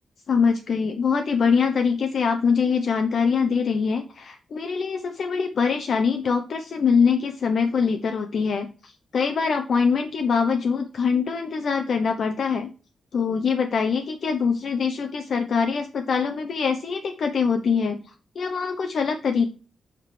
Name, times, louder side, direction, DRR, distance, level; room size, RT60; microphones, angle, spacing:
voice 1, 0.3-12.7 13.1-18.0 18.4-19.5, left 5 dB, 55° left, 6 dB, 0.7 m, -23 dB
5.9 x 4.9 x 4.8 m, 0.36 s
wide cardioid pair, 170°, 0 cm